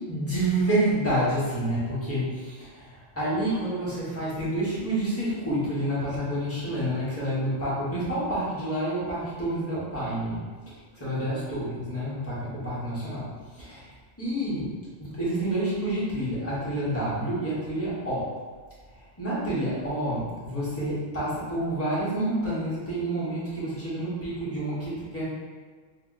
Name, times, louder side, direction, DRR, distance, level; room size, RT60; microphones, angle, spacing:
voice 1, 0.0-10.4 10.9-13.3 13.5-13.9 14.2-18.3 18.9-25.2, right 1 dB, 10° left, -10 dB, 1.1 m, -28 dB
4.6 x 2.3 x 2.5 m, 1.5 s
omnidirectional pair, 1.3 m